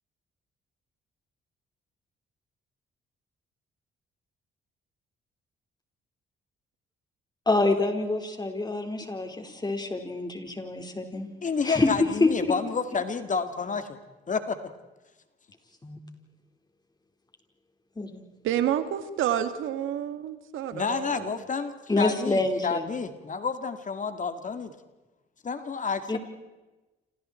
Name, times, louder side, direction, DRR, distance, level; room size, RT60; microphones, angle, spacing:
voice 1, 7.5-11.3 11.6-11.9 12.2-12.3 15.8-16.0 18.0-18.2 21.9-22.8 26.1-26.2, left 2 dB, 20° left, 5 dB, 4.5 m, -26 dB
voice 2, 11.4-14.0 14.3-14.6 20.7-24.7 25.4-26.2, left 5 dB, 40° left, 9 dB, 2.3 m, -30 dB
voice 3, 18.4-21.3, right 10 dB, 85° right, 10 dB, 2.1 m, -29 dB
28.5 x 28.0 x 4.5 m, 1.1 s
cardioid pair, 90°, 20 cm